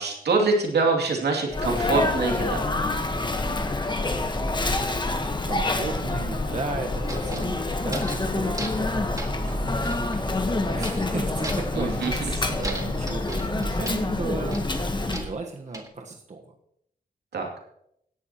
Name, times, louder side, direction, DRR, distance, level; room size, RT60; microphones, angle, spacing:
voice 1, 0.0-2.6 11.7-12.6 17.3-17.5, right 3 dB, 85° right, 1 dB, 2.7 m, -25 dB
Sneeze, 1.5-15.3, left 2 dB, 25° left, 1.2 m, -27 dB
voice 2, 5.4-14.7 15.1-16.5, right 3 dB, 45° right, 2 dB, 1.2 m, -35 dB
sound 1, 7.1-8.3 8.5-8.9 9.2-10.2 10.8-11.1 11.4-12.3 12.6-14.0 14.5-15.9, right 2 dB, 20° right, 1.8 m, -38 dB
16.5 x 11.0 x 3.0 m, 0.74 s
cardioid pair, 75°, 17 cm